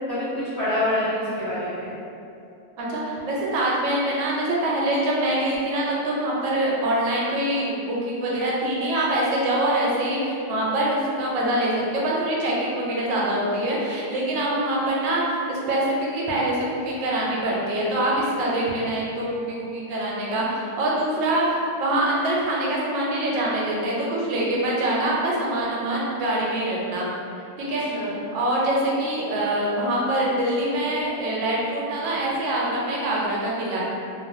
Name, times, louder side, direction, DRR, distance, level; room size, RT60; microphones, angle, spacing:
voice 1, 0.1-2.0 27.9-28.1, left 1 dB, 65° left, -14 dB, 0.6 m, -26 dB
voice 2, 2.8-27.1 27.6-33.8, right 1 dB, 80° right, -4 dB, 1.3 m, -24 dB
2.9 x 2.3 x 2.5 m, 2.6 s
omnidirectional pair, 2.0 m